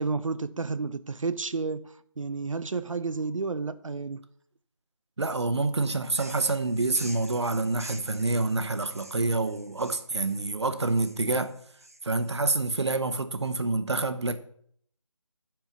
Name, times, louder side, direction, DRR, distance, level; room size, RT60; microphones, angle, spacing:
voice 1, 0.0-4.2, right 4 dB, 75° right, 0.6 m, -31 dB
voice 2, 5.2-11.5 12.0-14.4, right 3 dB, 55° right, 1.0 m, -27 dB
sound 1, 6.0-12.3, right 1 dB, 30° right, 0.5 m, -47 dB
10.5 x 4.5 x 6.8 m
figure-of-eight pair, 175°, 17 cm